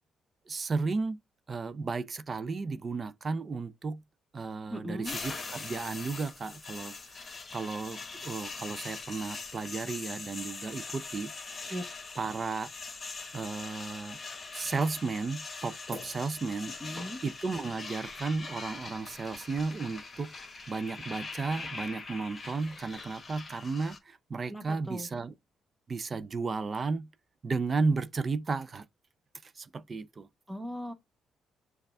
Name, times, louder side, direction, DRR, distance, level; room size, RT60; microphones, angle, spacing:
voice 1, 0.5-1.2 1.5-4.0 4.3-11.3 12.2-12.7 13.3-14.2 14.5-16.7 17.2-20.3 20.7-25.3 25.9-27.1 27.4-28.9 29.4-30.3, right 4 dB, 35° right, 0.4 m, -34 dB
voice 2, 4.7-5.2 11.7-11.8 16.8-17.2 24.5-25.1 30.5-30.9, equal, 5° right, 0.9 m, -38 dB
sound 1, 5.0-24.0, left 4 dB, 35° left, 1.2 m, -42 dB
6.5 x 2.4 x 3.3 m
cardioid pair, 90°, 0 cm